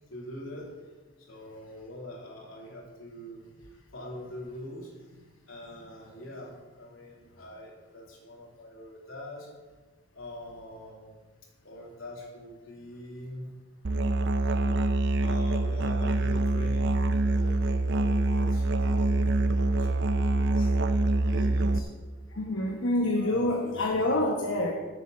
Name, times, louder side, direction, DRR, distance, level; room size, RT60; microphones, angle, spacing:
voice 1, 0.1-0.7 1.2-9.5 10.1-11.1 11.6-13.5 14.4-14.6 15.2-21.9 23.2-23.5, equal, 80° left, -3 dB, 3.0 m, -44 dB
Musical instrument, 13.8-21.8, right 2 dB, 55° right, 0.6 m, -25 dB
voice 2, 22.3-24.7, left 1 dB, 65° left, -1 dB, 1.1 m, -27 dB
8.0 x 7.0 x 7.3 m, 1.3 s
head